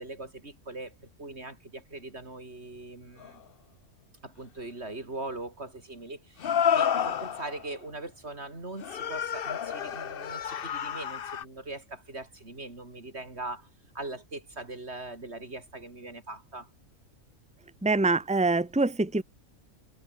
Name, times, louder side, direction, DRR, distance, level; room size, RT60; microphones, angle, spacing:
voice 1, 0.0-3.4 4.2-13.7 13.9-16.7, right 2 dB, 55° right, 4.6 m, -41 dB
sound 1, 3.2-3.3 6.4-7.6 8.8-11.4, left 8 dB, 50° left, 0.9 m, -29 dB
voice 2, 17.8-19.2, right 3 dB, 5° right, 1.3 m, -24 dB
omnidirectional pair, 1.4 m